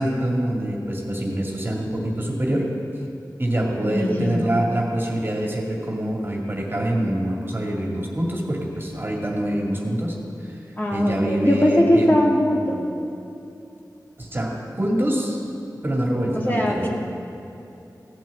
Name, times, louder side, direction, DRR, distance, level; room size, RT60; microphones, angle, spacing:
voice 1, 0.0-2.7 3.4-10.2 10.4-10.6 10.9-12.1 14.2-15.4 15.8-16.8, right 1 dB, 30° right, -1 dB, 2.2 m, -25 dB
voice 2, 3.8-4.5 10.8-12.9 16.3-16.9, equal, 30° left, -3 dB, 2.2 m, -20 dB
16.5 x 6.2 x 8.5 m, 2.9 s
wide cardioid pair, 65°, 7 cm